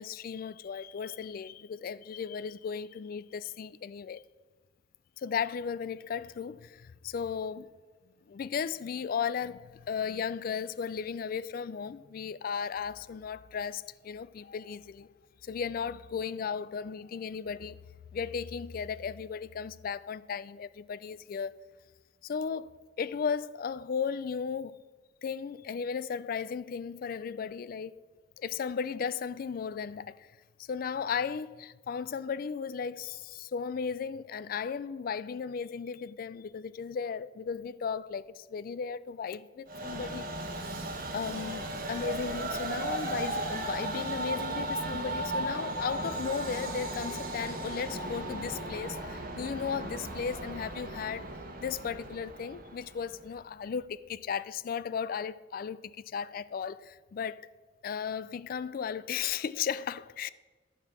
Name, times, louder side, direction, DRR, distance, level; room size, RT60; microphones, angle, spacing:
voice 1, 0.0-4.2 5.2-7.7 8.3-15.1 15.4-17.8 18.1-21.5 22.2-24.8 25.2-27.9 28.4-30.3 30.7-40.3 41.1-51.3 51.6-57.5 57.8-60.3, left 6 dB, 50° left, 0.3 m, -35 dB
Train, 39.7-53.2, right 1 dB, 50° right, 1.1 m, -36 dB
11.5 x 5.4 x 6.0 m
head